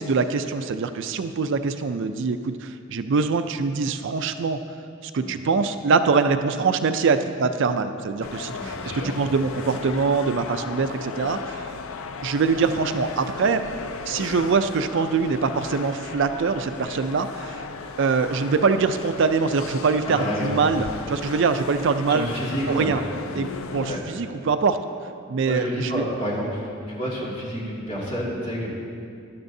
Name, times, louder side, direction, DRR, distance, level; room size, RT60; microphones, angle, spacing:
voice 1, 0.0-4.6 5.0-11.7 12.2-13.6 14.1-17.6 18.0-22.3 22.7-23.0 23.3-24.8 25.3-26.0, right 4 dB, 65° right, 9 dB, 0.4 m, -23 dB
sound 1, 8.2-24.0, left 5 dB, 80° left, 0.5 m, -36 dB
voice 2, 8.6-9.2 20.2-20.7 22.1-22.9 23.9-24.0 25.4-28.7, equal, 30° left, -6 dB, 2.4 m, -29 dB
13.5 x 11.0 x 2.7 m, 2.4 s
head